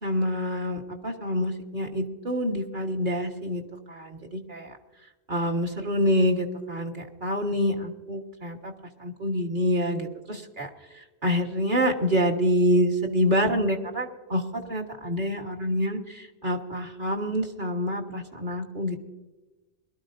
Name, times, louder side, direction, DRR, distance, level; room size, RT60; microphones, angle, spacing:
voice 1, 0.0-3.6 3.9-4.7 5.3-8.7 9.0-10.7 11.2-18.9, equal, 50° right, 0 dB, 1.7 m, -27 dB
22.0 x 12.5 x 2.6 m, 1.1 s
omnidirectional pair, 1.1 m